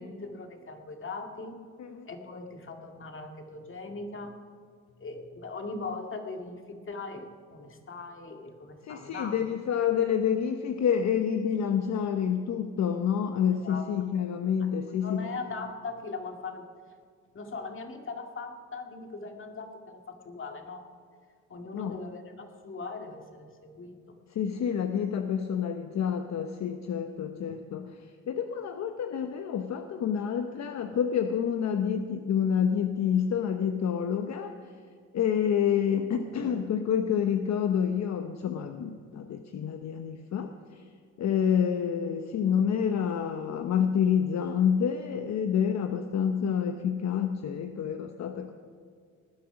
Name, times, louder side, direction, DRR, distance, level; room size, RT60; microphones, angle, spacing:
voice 1, 0.0-1.6 2.1-4.3 5.0-9.4 13.6-13.9 14.6-14.7 15.0-16.7 17.3-20.8 21.5-24.2, left 3 dB, 45° left, 4 dB, 2.1 m, -40 dB
voice 2, 8.8-15.3 21.7-22.0 24.3-27.9 28.3-34.5 35.1-40.8 41.2-48.5, left 8 dB, 65° left, 6 dB, 0.9 m, -28 dB
19.5 x 10.5 x 5.9 m, 2.1 s
cardioid pair, 90°, 30 cm